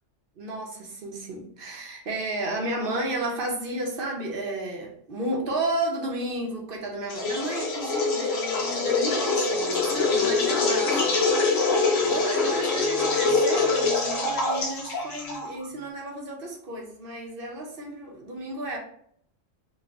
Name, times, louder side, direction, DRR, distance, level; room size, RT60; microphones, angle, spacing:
voice 1, 0.4-18.8, right 1 dB, 50° right, 0 dB, 0.8 m, -32 dB
sound 1, 7.1-15.6, left 3 dB, 75° left, 1.2 m, -24 dB
4.1 x 2.4 x 2.4 m, 0.65 s
omnidirectional pair, 1.4 m